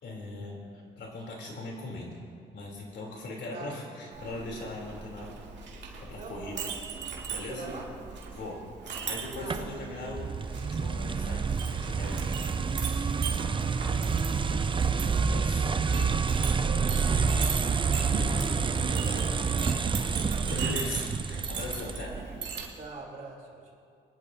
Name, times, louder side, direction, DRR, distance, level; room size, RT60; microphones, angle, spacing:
voice 1, 0.0-0.6 1.0-2.2 2.5-5.4 6.0-6.7 7.3-7.7 8.4-8.6 9.0-12.5 13.8-14.2 14.5-15.7 18.1-18.5 20.5-22.2, left 2 dB, 60° left, -1 dB, 3.4 m, -40 dB
Chink clink, 4.1-22.7, right 5 dB, 60° right, 2.4 m, -39 dB
voice 2, 6.0-6.8 7.5-7.9 9.3-9.8 16.3-17.5 19.0-19.5 19.9-20.2 22.8-23.8, right 3 dB, 40° right, -2 dB, 3.3 m, -44 dB
sound 1, 9.5-22.2, right 5 dB, 25° right, 0.5 m, -28 dB
24.5 x 11.0 x 2.8 m, 2.3 s
cardioid pair, 90°, 20 cm